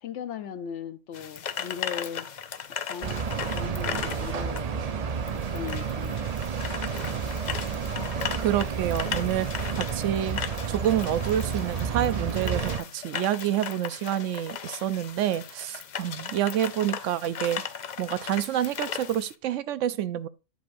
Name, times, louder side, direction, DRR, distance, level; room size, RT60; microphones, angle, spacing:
voice 1, 0.0-2.3 2.8-4.9 5.3-6.3 7.9-8.3, left 8 dB, 70° left, 1.0 m, -39 dB
sound 1, 1.1-19.3, left 7 dB, 50° left, 0.5 m, -37 dB
sound 2, 3.0-12.8, right 6 dB, 50° right, 0.4 m, -31 dB
voice 2, 8.4-10.4 10.7-17.6 18.0-20.3, right 11 dB, 75° right, 0.9 m, -28 dB
10.5 x 6.4 x 2.6 m
omnidirectional pair, 1.3 m